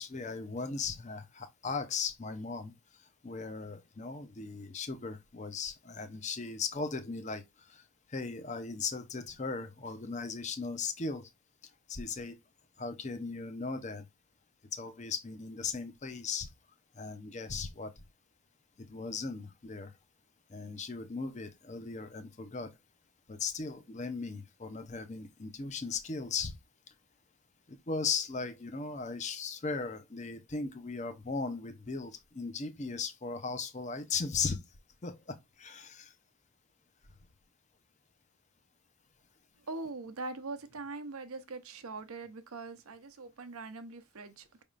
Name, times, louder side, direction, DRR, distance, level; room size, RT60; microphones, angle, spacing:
voice 1, 0.0-2.7 3.2-7.8 8.1-11.3 11.9-12.4 12.8-14.0 14.7-16.5 16.9-17.9 18.8-19.9 20.5-22.7 23.3-26.5 27.7-34.6 35.0-36.1, left 4 dB, 30° left, 0.6 m, -37 dB
voice 2, 39.7-44.6, right 3 dB, 85° right, 0.7 m, -42 dB
5.3 x 3.5 x 2.4 m
head